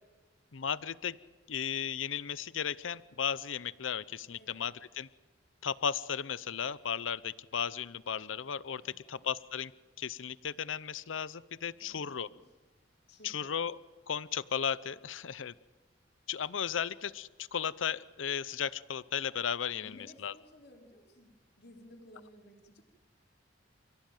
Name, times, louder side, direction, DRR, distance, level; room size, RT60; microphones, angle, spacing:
voice 1, 0.5-1.2 1.5-5.1 5.6-9.7 10.0-12.3 13.2-13.8 14.1-15.5 16.3-20.3, left 7 dB, 80° left, 18 dB, 0.7 m, -35 dB
voice 2, 4.3-4.7 8.8-9.3 11.8-12.4 13.1-13.5 19.8-21.3 21.6-22.8, left 1 dB, 55° left, 1 dB, 4.5 m, -56 dB
29.5 x 16.5 x 9.2 m, 1.3 s
head